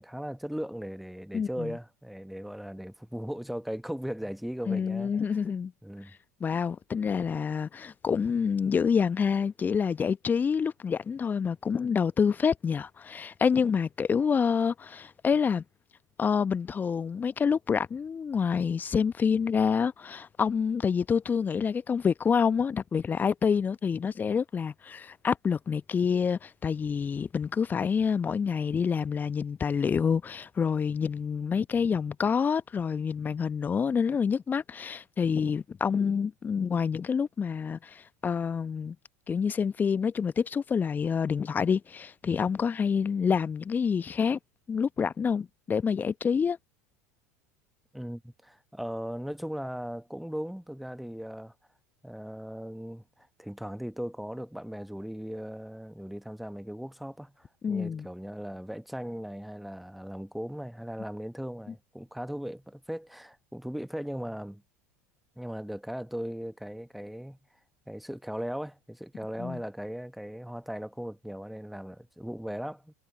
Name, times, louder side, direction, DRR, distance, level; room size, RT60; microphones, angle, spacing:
voice 1, 0.0-5.4 5.8-6.2 47.9-51.5 52.0-64.6 65.4-67.4 67.9-72.9, equal, ahead, 1.1 m, -38 dB
voice 2, 1.3-1.7 4.7-5.7 6.4-15.6 16.2-39.0 39.3-44.4 44.7-46.6 57.6-58.1 69.4-69.6, left 6 dB, 20° left, 1.1 m, -27 dB
figure-of-eight pair, 75°, 8 cm